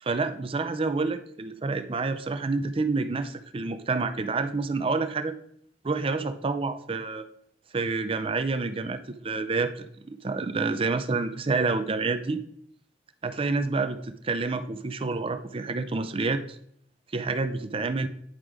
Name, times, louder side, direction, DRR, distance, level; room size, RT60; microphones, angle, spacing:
voice 1, 0.0-5.3 5.8-7.2 7.7-12.4 13.2-16.4 17.1-18.1, right 3 dB, 30° right, 10 dB, 0.5 m, -28 dB
9.7 x 3.7 x 4.8 m, 0.67 s
head